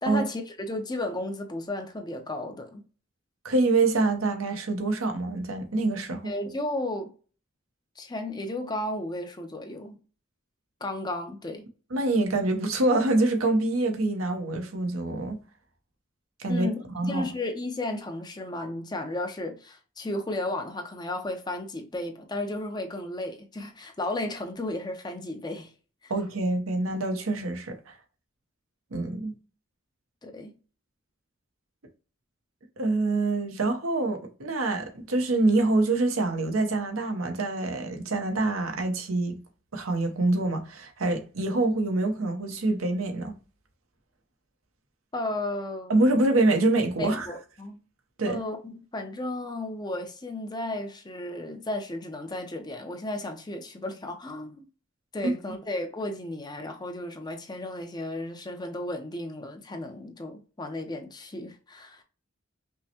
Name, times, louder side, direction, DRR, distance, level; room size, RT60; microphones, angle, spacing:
voice 1, 0.0-2.8 6.2-7.1 8.0-10.0 10.8-11.7 16.5-25.7 26.0-26.1 30.2-30.5 45.1-46.0 47.0-47.8 48.3-54.6 55.1-62.0, left 1 dB, 20° left, 0.6 m, -34 dB
voice 2, 3.4-6.3 11.9-15.4 16.4-16.7 16.9-17.3 26.1-27.9 28.9-29.3 32.8-39.4 39.7-43.3 45.9-47.3 48.2-48.4 55.2-55.3, right 2 dB, 85° right, 0.9 m, -25 dB
5.4 x 2.1 x 2.9 m
head